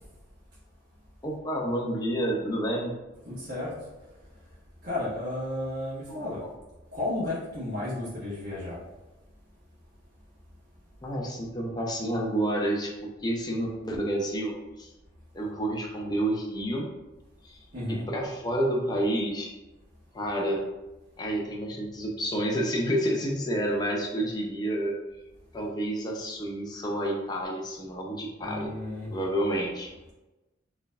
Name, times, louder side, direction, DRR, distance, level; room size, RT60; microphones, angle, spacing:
voice 1, 1.2-2.9 6.1-6.5 11.0-14.9 15.3-16.9 17.4-17.6 17.9-19.5 20.1-20.6 21.2-24.9 25.5-28.7 29.1-30.1, right 1 dB, 20° left, -1 dB, 0.6 m, -29 dB
voice 2, 3.2-3.7 4.8-6.4 6.9-8.8 17.7-18.1 28.4-29.3, left 1 dB, 55° right, -9 dB, 1.3 m, -33 dB
4.4 x 3.3 x 2.5 m, 1.1 s
head